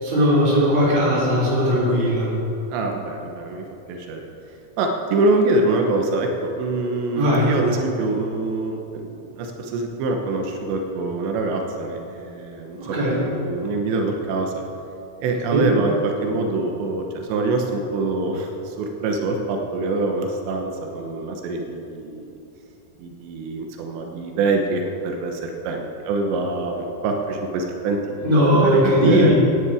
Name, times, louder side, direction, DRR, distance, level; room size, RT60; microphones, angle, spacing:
voice 1, 0.0-2.3 7.2-7.5 12.8-13.2 15.5-15.7 28.2-29.3, equal, 45° right, -5 dB, 4.2 m, -18 dB
voice 2, 2.7-4.2 4.8-14.6 15.2-22.3 23.0-29.3, right 3 dB, 90° right, 2 dB, 3.3 m, -25 dB
17.5 x 10.0 x 4.9 m, 2.8 s
omnidirectional pair, 4.9 m